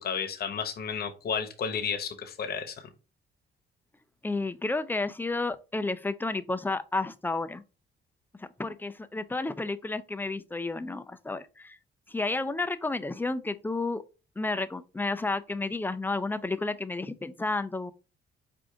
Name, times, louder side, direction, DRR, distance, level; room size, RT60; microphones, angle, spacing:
voice 1, 0.0-2.9, left 6 dB, 50° left, 0.9 m, -32 dB
voice 2, 4.2-7.6 8.4-11.8 12.1-14.0 14.4-17.9, left 3 dB, 10° left, 0.4 m, -31 dB
4.7 x 2.5 x 3.7 m
cardioid pair, 90°, 20 cm